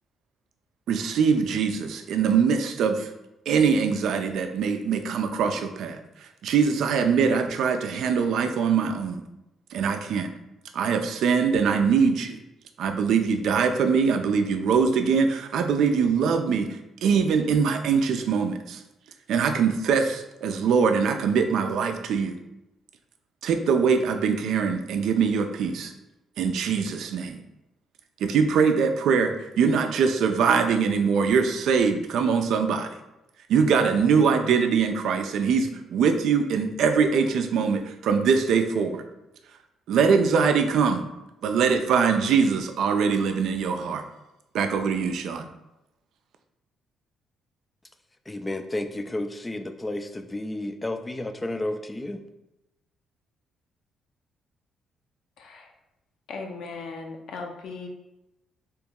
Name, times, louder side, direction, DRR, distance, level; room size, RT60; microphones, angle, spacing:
voice 1, 0.9-3.1 3.5-9.2 9.7-10.3 10.7-12.4 12.8-18.8 19.3-22.4 23.4-25.9 26.4-27.4 28.2-32.9 33.5-39.0 39.9-41.0 41.4-44.0 44.5-45.5, right 6 dB, 75° right, 0.4 m, -23 dB
voice 2, 48.3-52.2, left 1 dB, 20° left, 0.4 m, -31 dB
voice 3, 55.4-55.7 56.3-57.9, left 4 dB, 75° left, 0.6 m, -37 dB
3.0 x 2.9 x 3.5 m
cardioid pair, 90°, 0 cm